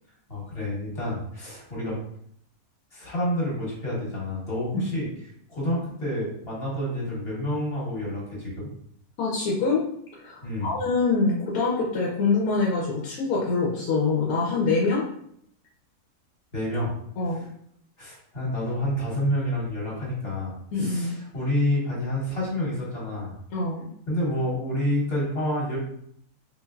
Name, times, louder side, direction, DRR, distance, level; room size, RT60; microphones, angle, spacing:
voice 1, 0.3-2.0 2.9-5.1 5.5-8.7 10.4-10.7 16.5-16.9 18.0-23.3 24.1-25.8, left 1 dB, 45° left, -6 dB, 1.2 m, -28 dB
voice 2, 9.2-9.8 10.2-15.0 17.2-17.4 20.7-21.2 23.5-23.9, left 4 dB, 85° left, -4 dB, 1.1 m, -25 dB
3.2 x 2.7 x 2.3 m, 0.69 s
omnidirectional pair, 1.5 m